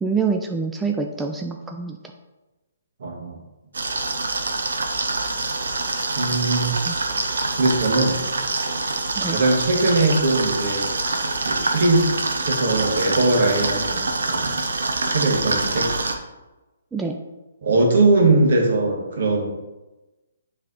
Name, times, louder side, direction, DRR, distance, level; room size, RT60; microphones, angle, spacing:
voice 1, 0.0-2.0 6.9-7.0 9.2-9.4 16.9-17.2, right 5 dB, 10° right, 3 dB, 0.3 m, -25 dB
voice 2, 3.0-3.3 6.1-6.8 7.6-8.2 9.3-10.9 11.4-14.5 15.1-16.0 17.6-19.5, right 2 dB, 65° right, 1 dB, 1.6 m, -20 dB
sound 1, 3.7-16.1, right 3 dB, 80° right, 0.8 m, -25 dB
7.3 x 3.4 x 4.0 m, 1.1 s
hypercardioid pair, 150°, 0 cm